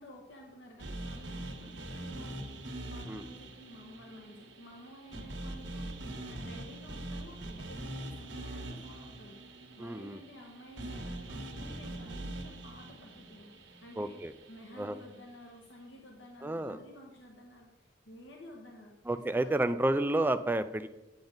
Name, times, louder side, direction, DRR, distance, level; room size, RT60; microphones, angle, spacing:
voice 1, 0.0-14.2 14.5-19.9, equal, 75° left, 0 dB, 1.3 m, -52 dB
sound 1, 0.8-15.0, right 1 dB, 70° right, 1.3 m, -43 dB
voice 2, 9.8-10.2 14.0-14.3 14.8-15.0 16.4-16.8 19.1-20.9, right 1 dB, 10° right, 11 dB, 0.4 m, -30 dB
9.1 x 8.8 x 3.9 m, 1.0 s
head